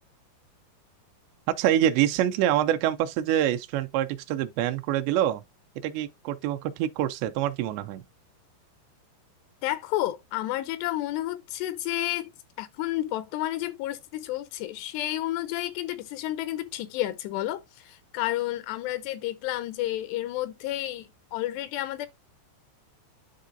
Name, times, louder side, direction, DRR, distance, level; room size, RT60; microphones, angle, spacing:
voice 1, 1.6-5.4 5.8-8.0, right 12 dB, 85° right, 2.7 m, -25 dB
voice 2, 9.6-12.3 12.6-22.1, left 15 dB, 85° left, 2.5 m, -31 dB
10.5 x 3.7 x 2.5 m
omnidirectional pair, 5.0 m